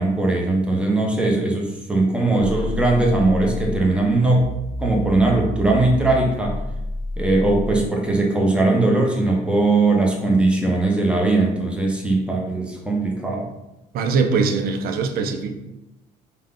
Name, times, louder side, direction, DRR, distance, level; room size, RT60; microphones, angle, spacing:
voice 1, 0.0-4.5 4.8-6.6 7.2-13.5, right 2 dB, 5° right, -1 dB, 0.7 m, -19 dB
sound 1, 2.4-3.9 4.4-7.9, left 2 dB, 40° left, 0.7 m, -29 dB
voice 2, 13.9-15.6, right 4 dB, 60° right, 7 dB, 0.5 m, -21 dB
3.6 x 2.2 x 3.6 m, 0.93 s
cardioid pair, 110°, 17 cm